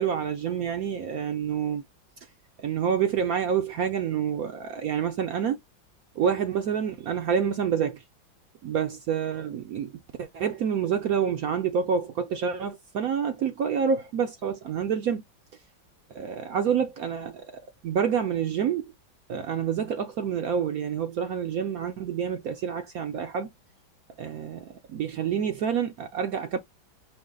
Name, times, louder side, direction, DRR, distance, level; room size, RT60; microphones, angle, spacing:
voice 1, 0.0-1.8 2.6-5.6 6.2-8.0 8.6-9.9 10.2-15.2 16.1-18.9 19.3-23.5 24.2-26.6, right 7 dB, 70° right, 0.8 m, -28 dB
4.9 x 2.0 x 3.7 m
omnidirectional pair, 2.1 m